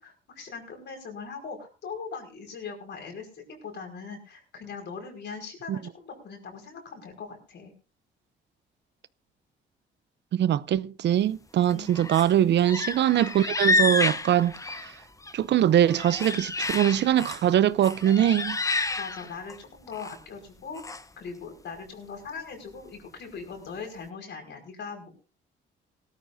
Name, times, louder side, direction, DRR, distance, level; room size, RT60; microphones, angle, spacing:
voice 1, 0.0-7.7 11.7-12.2 19.0-25.2, left 5 dB, 60° left, 5.1 m, -40 dB
voice 2, 10.3-14.9 15.3-18.6, right 11 dB, 60° right, 0.6 m, -22 dB
sound 1, 11.7-12.3 12.6-15.3 15.7-17.5 17.8-19.6 19.9-20.2 20.8-21.0, left 3 dB, 15° left, 0.8 m, -29 dB
18.5 x 13.0 x 2.7 m
cardioid pair, 90°, 20 cm